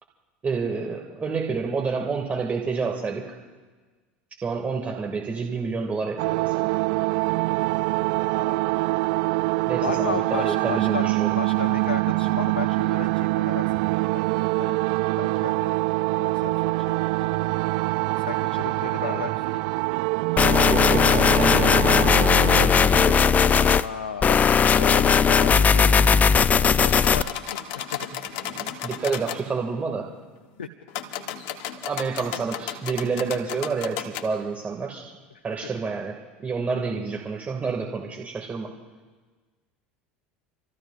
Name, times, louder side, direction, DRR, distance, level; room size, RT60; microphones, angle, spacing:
voice 1, 0.4-3.4 4.4-6.8 9.7-11.3 19.0-19.4 20.7-23.4 28.5-30.1 31.8-35.2 35.4-38.7, right 4 dB, 25° right, 1 dB, 2.3 m, -29 dB
sound 1, 6.2-22.7, right 22 dB, 65° right, 0.3 m, -25 dB
voice 2, 8.3-8.9 9.8-11.1 11.4-14.2 14.6-14.8 15.2-15.8 16.2-17.7 18.2-19.6 23.7-24.4 24.8-28.1 28.6-28.7 30.6-30.7 36.8-36.9, left 6 dB, 85° left, 5 dB, 0.7 m, -35 dB
sound 2, 20.4-23.8 24.2-27.2, left 6 dB, 30° left, 0.5 m, -18 dB
sound 3, 26.9-29.4 30.9-34.3, left 10 dB, 60° left, 1.2 m, -34 dB
29.5 x 14.5 x 2.6 m, 1.3 s
hypercardioid pair, 80°, 6 cm